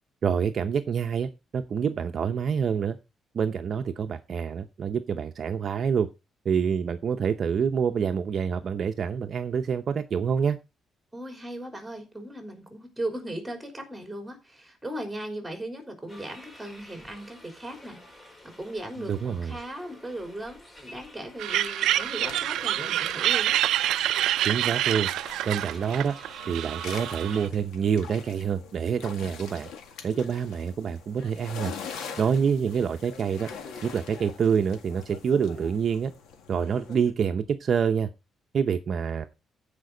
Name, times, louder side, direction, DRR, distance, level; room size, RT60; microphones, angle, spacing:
voice 1, 0.2-3.0 3.3-6.1 6.4-10.6 19.0-19.6 24.4-25.1 25.5-26.1 26.5-29.7 30.0-31.7 32.2-33.5 33.8-36.1 36.5-38.1 38.5-39.3, right 7 dB, 50° right, 7 dB, 0.7 m, -27 dB
voice 2, 11.1-18.2 18.4-23.6, right 1 dB, 5° right, 4 dB, 3.6 m, -37 dB
sound 1, 16.1-27.5, left 1 dB, 20° left, 2.3 m, -49 dB
sound 2, 21.4-27.5, right 13 dB, 90° right, 0.4 m, -27 dB
sound 3, 21.8-37.1, left 6 dB, 90° left, 1.9 m, -44 dB
15.0 x 5.2 x 3.9 m, 0.27 s
cardioid pair, 120°, 0 cm